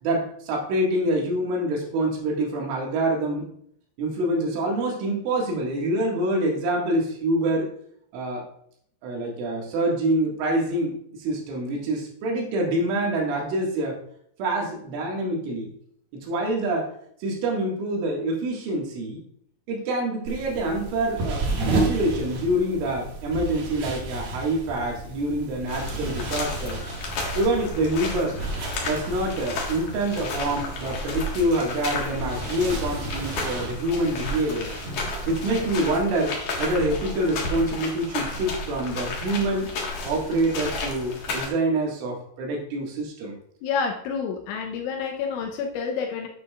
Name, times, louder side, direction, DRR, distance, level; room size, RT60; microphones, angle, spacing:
voice 1, 0.0-3.5 4.0-7.7 8.1-8.5 9.0-14.0 14.4-15.7 16.1-16.9 17.2-19.2 19.7-26.8 27.4-28.4 28.8-34.7 35.3-39.7 40.0-43.3, right 1 dB, 75° right, -1 dB, 4.2 m, -26 dB
sound 1, 20.3-35.8, right 2 dB, 60° right, 3.2 m, -33 dB
sound 2, 25.7-41.5, left 2 dB, 65° left, 1.9 m, -32 dB
voice 2, 43.6-46.3, left 6 dB, 80° left, 2 dB, 3.1 m, -28 dB
10.0 x 8.4 x 2.4 m, 0.67 s
omnidirectional pair, 5.7 m